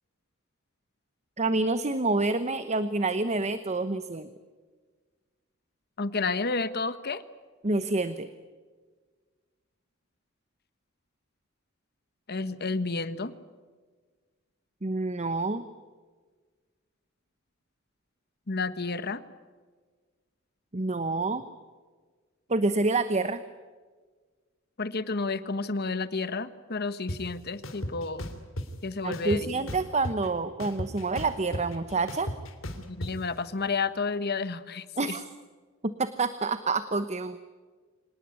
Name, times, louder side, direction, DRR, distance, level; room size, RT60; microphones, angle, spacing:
voice 1, 1.4-4.3 7.6-8.3 14.8-15.6 20.7-21.4 22.5-23.4 29.0-32.3 35.0-35.2 35.8-37.4, right 3 dB, 35° right, 12 dB, 1.0 m, -28 dB
voice 2, 6.0-7.2 12.3-13.3 18.5-19.2 24.8-28.3 28.8-29.7 32.9-35.2, left 4 dB, 50° left, 13 dB, 1.3 m, -31 dB
sound 1, 27.1-27.2 27.6-28.7 29.1-30.3 30.6-33.1, left 1 dB, 70° left, 3.3 m, -35 dB
26.0 x 19.5 x 9.6 m, 1.5 s
head